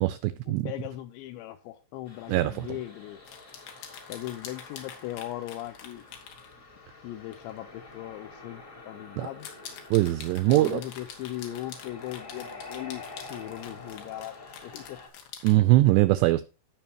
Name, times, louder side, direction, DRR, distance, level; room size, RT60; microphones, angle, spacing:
voice 1, 0.0-0.7 2.3-2.7 9.2-9.3 9.9-10.8 15.4-16.4, right 17 dB, 90° right, 2.4 m, -22 dB
voice 2, 0.6-3.2 4.1-6.1 7.0-9.5 10.5-13.0 13.3-15.0, left 14 dB, 85° left, 2.6 m, -38 dB
sound 1, 2.1-15.1, left 3 dB, 35° left, 1.1 m, -47 dB
sound 2, 3.3-6.5 7.3-7.5 7.9-8.0 9.2-15.6, left 7 dB, 70° left, 3.8 m, -46 dB
16.5 x 5.7 x 2.9 m
omnidirectional pair, 5.6 m